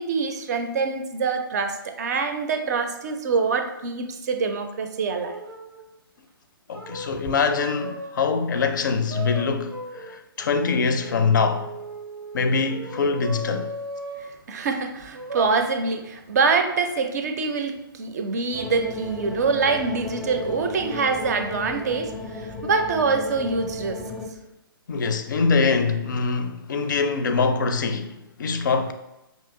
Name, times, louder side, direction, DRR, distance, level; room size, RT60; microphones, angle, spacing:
voice 1, 0.0-5.4 7.2-7.3 14.2-24.0, right 4 dB, 45° right, 0.5 m, -25 dB
sound 1, 5.2-5.8 6.7-8.3 9.1-14.3 15.1-15.5, right 2 dB, 90° right, 0.7 m, -36 dB
voice 2, 6.7-11.7 12.3-13.7 24.9-28.9, left 4 dB, 55° left, 0.4 m, -24 dB
sound 2, 18.5-24.3, left 2 dB, ahead, 0.6 m, -34 dB
5.2 x 2.8 x 2.5 m
figure-of-eight pair, 130°, 12 cm